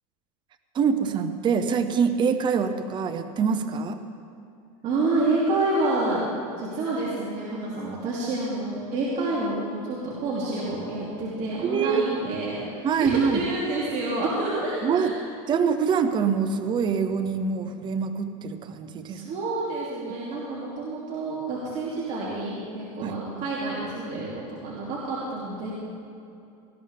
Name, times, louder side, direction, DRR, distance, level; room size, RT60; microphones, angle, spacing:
voice 1, 0.7-3.9 11.6-12.1 12.8-13.4 14.8-15.1 15.5-19.2 23.0-23.2, right 6 dB, 25° right, 9 dB, 0.8 m, -24 dB
voice 2, 4.8-6.2 6.6-15.1 19.0-25.7, right 2 dB, 40° right, -7 dB, 2.7 m, -28 dB
18.5 x 14.0 x 3.5 m, 2.6 s
supercardioid pair, 135°, 18 cm